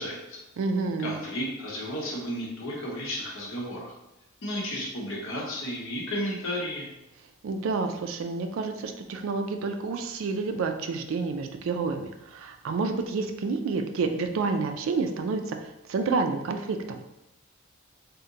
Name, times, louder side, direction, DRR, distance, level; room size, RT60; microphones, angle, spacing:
voice 1, 0.0-0.4 1.0-3.9 4.4-6.9, equal, 65° left, -3 dB, 0.8 m, -33 dB
voice 2, 0.6-1.2 7.4-17.0, right 4 dB, 65° right, 6 dB, 0.3 m, -29 dB
2.8 x 2.1 x 3.7 m, 0.91 s
head